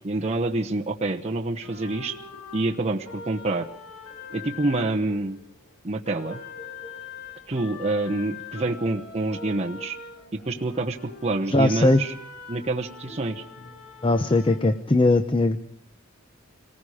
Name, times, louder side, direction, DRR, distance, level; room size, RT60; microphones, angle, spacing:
voice 1, 0.0-2.2 2.5-3.7 4.3-5.4 5.8-6.4 7.5-10.0 10.3-12.1 12.5-13.4, right 2 dB, 30° right, 1 dB, 1.0 m, -27 dB
sound 1, 1.6-5.7 6.0-14.6, left 4 dB, 85° left, 6.9 m, -42 dB
voice 2, 11.5-12.0 14.0-15.6, left 2 dB, 25° left, 10 dB, 0.8 m, -20 dB
27.0 x 19.5 x 5.0 m, 0.63 s
head